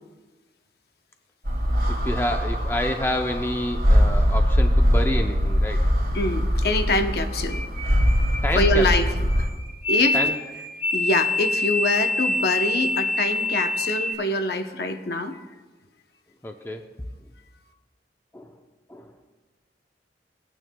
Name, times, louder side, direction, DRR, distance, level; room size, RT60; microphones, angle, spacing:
sound 1, 1.4-9.4, equal, 55° right, 2.2 m, -22 dB
voice 1, 2.0-5.9 8.4-8.9 10.1-10.3 16.4-16.8 18.3-18.5 18.9-19.1, left 1 dB, 15° left, 4 dB, 0.5 m, -28 dB
voice 2, 6.1-7.6 8.6-9.1 9.4-9.5 9.9-10.2 10.9-15.4, left 2 dB, 60° left, 6 dB, 0.7 m, -24 dB
sound 2, 7.5-14.1, left 2 dB, 40° left, 1.6 m, -26 dB
18.5 x 9.0 x 2.2 m, 1.2 s
head